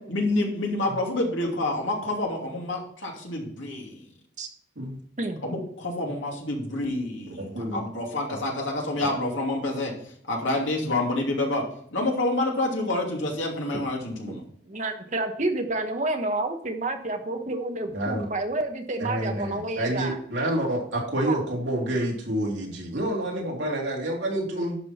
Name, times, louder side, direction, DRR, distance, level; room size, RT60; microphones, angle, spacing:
voice 1, 0.1-4.1 5.4-9.9 10.3-11.6 11.9-14.4, left 2 dB, 80° left, 0 dB, 2.7 m, -28 dB
voice 2, 7.3-7.8 9.0-9.1 17.9-18.3 19.0-24.8, right 1 dB, 70° right, -2 dB, 3.1 m, -28 dB
voice 3, 14.7-20.2 21.3-21.4, right 2 dB, 40° right, 5 dB, 1.2 m, -29 dB
11.5 x 6.2 x 4.4 m, 0.62 s
head